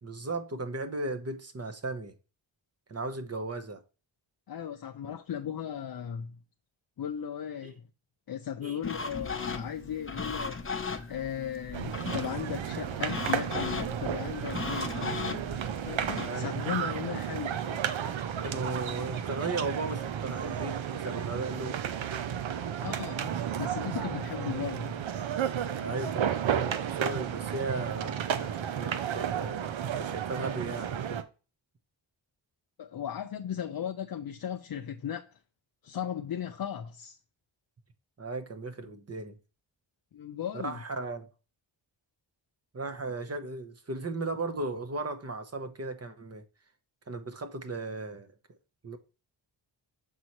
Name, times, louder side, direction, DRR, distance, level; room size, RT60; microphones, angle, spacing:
voice 1, 0.0-2.1 2.9-3.8 7.6-7.7 8.6-8.8 16.2-16.5 18.4-21.9 25.8-31.2 38.2-39.4 40.6-41.3 42.7-46.4 47.1-48.3 48.8-49.0, right 3 dB, 30° right, 1.0 m, -36 dB
voice 2, 4.5-6.4 7.0-7.8 8.3-10.6 11.1-15.0 15.9-17.6 22.8-25.0 32.8-35.4 35.8-37.2 40.1-40.8, left 9 dB, 50° left, 0.6 m, -36 dB
sound 1, 8.8-16.3, left 4 dB, 25° left, 0.8 m, -37 dB
sound 2, 11.7-31.2, right 9 dB, 70° right, 0.7 m, -33 dB
7.3 x 4.2 x 3.1 m
cardioid pair, 60°, 48 cm